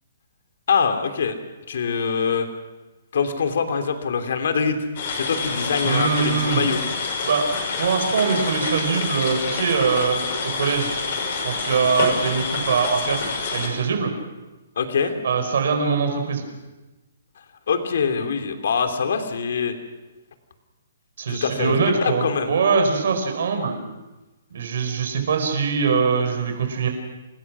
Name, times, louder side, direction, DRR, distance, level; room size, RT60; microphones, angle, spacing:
voice 1, 0.7-1.4 1.7-2.5 3.1-4.8 5.1-6.8 14.8-15.1 17.7-19.7 21.3-21.7 22.0-22.5, left 6 dB, 60° left, 7 dB, 3.0 m, -23 dB
sound 1, 5.0-13.7, left 4 dB, 40° left, 6.0 m, -27 dB
voice 2, 5.8-6.7 7.2-10.9 11.4-13.3 13.5-14.1 15.2-16.5 21.2-23.8 24.5-26.9, right 5 dB, 60° right, 4 dB, 4.8 m, -22 dB
28.5 x 20.0 x 6.1 m, 1.1 s
hypercardioid pair, 170°, 0 cm